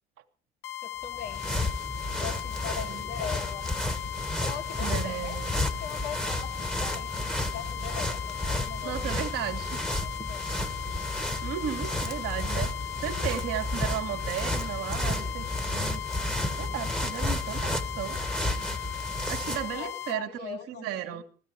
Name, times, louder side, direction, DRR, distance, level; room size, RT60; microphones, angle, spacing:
sound 1, 0.6-20.2, left 14 dB, 45° left, 1.1 m, -38 dB
voice 1, 0.8-1.5 2.2-3.6 4.3-5.4 5.8-9.1 10.0-10.7 19.5-21.2, left 7 dB, 65° left, 3.2 m, -40 dB
sound 2, 1.0-19.8, left 1 dB, 5° left, 1.6 m, -32 dB
voice 2, 4.8-5.6 8.8-9.9 11.4-12.7 13.0-15.5 15.7-16.0 16.6-18.2 19.3-21.2, right 11 dB, 50° right, 1.6 m, -34 dB
14.5 x 14.5 x 4.7 m
figure-of-eight pair, 55°, 30 cm